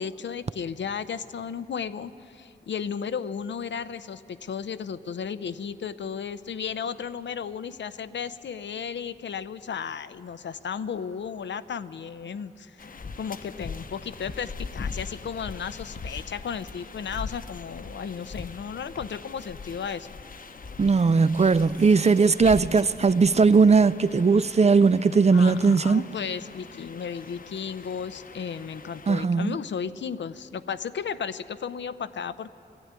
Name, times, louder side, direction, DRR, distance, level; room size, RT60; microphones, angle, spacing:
voice 1, 0.0-20.1 25.3-32.5, left 7 dB, 90° left, 0.6 m, -34 dB
sound 1, 12.8-29.3, left 4 dB, 50° left, 0.8 m, -41 dB
voice 2, 20.8-26.0 29.1-29.6, right 4 dB, 35° right, 0.4 m, -19 dB
19.5 x 15.0 x 9.6 m
wide cardioid pair, 95°, 18 cm